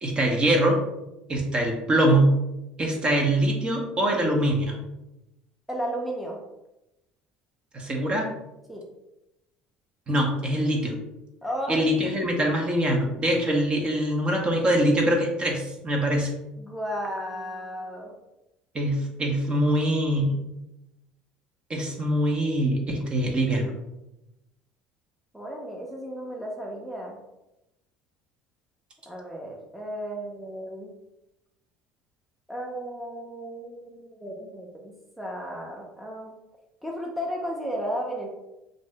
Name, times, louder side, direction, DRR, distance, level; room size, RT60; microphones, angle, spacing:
voice 1, 0.0-0.8 1.3-2.3 2.8-4.7 7.7-8.3 10.1-10.9 11.7-16.3 18.7-20.3 21.7-23.7, right 1 dB, 35° right, 1 dB, 0.8 m, -23 dB
voice 2, 5.7-6.4 8.7-8.8 11.4-11.9 16.6-18.1 25.3-27.2 29.1-30.9 32.5-34.7 35.2-36.3 36.8-38.3, equal, ahead, -2 dB, 0.6 m, -34 dB
2.6 x 2.6 x 3.3 m, 0.93 s
supercardioid pair, 95°, 3 cm